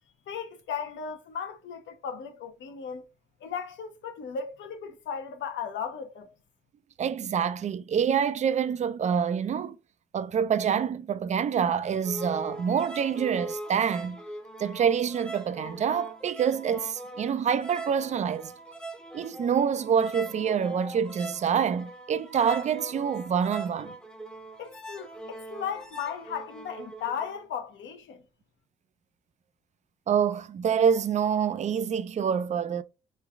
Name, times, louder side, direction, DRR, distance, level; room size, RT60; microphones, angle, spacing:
voice 1, 0.3-3.0 3.4-6.3 24.6-28.2, left 7 dB, 70° left, 0.8 m, -36 dB
voice 2, 7.0-9.8 10.1-14.2 14.6-18.5 19.1-23.9 30.1-32.8, right 7 dB, 35° right, 0.4 m, -26 dB
sound 1, 12.0-27.4, right 2 dB, 5° left, 0.7 m, -41 dB
3.2 x 2.3 x 3.5 m
cardioid pair, 90°, 20 cm